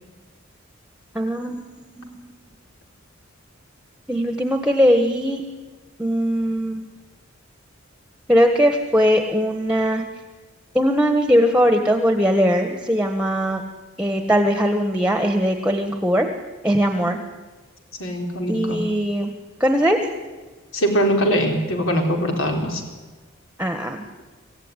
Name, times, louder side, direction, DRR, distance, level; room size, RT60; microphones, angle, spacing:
voice 1, 1.1-1.6 2.0-2.2 4.1-5.4 6.0-6.8 8.3-10.0 10.7-13.6 14.0-16.3 16.6-17.2 18.5-19.3 19.6-20.0 23.6-24.0, equal, 5° right, 5 dB, 1.3 m, -20 dB
voice 2, 18.0-18.9 20.7-22.8, equal, 80° left, 2 dB, 4.3 m, -22 dB
26.0 x 15.0 x 9.8 m, 1.3 s
head